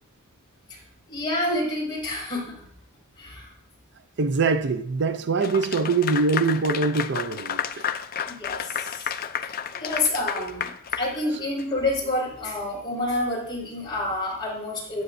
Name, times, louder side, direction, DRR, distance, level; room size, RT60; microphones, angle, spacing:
voice 1, 1.1-2.7 3.2-3.5 5.3-5.4 8.3-9.2 9.7-10.7 11.0-15.0, left 2 dB, 20° left, 4.8 m, -28 dB
voice 2, 4.2-7.8, right 4 dB, 55° right, 0.5 m, -23 dB
Clapping / Applause, 5.4-11.8, left 8 dB, 45° left, 0.5 m, -31 dB
14.5 x 9.3 x 2.7 m
head